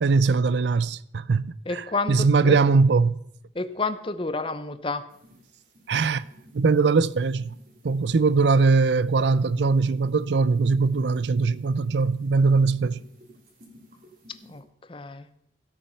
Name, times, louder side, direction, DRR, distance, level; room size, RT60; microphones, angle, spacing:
voice 1, 0.0-1.8 2.1-3.1 5.9-6.2 6.5-7.6 7.8-13.0, right 4 dB, 65° right, 0.4 m, -21 dB
voice 2, 1.7-2.6 3.5-5.1 14.4-14.6 14.9-15.3, left 3 dB, 30° left, 0.7 m, -30 dB
sound 1, 5.1-14.6, equal, 50° right, 3.1 m, -54 dB
14.0 x 8.5 x 5.6 m
head